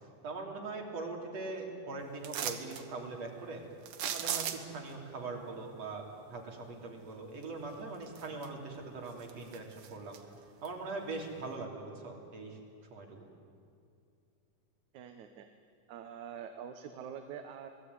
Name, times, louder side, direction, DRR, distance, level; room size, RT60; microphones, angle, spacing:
voice 1, 0.0-3.6 4.0-10.2 10.6-12.6 12.9-13.3, right 3 dB, 55° right, 0 dB, 4.6 m, -42 dB
sound 1, 2.2-2.8 3.9-4.9 7.4-7.5 8.0-8.7 9.1-10.2 10.6-10.7, right 9 dB, 90° right, 3.0 m, -37 dB
voice 2, 14.9-15.5 15.9-17.7, right 8 dB, 70° right, 6 dB, 2.5 m, -45 dB
27.5 x 20.0 x 9.7 m, 2.4 s
omnidirectional pair, 3.7 m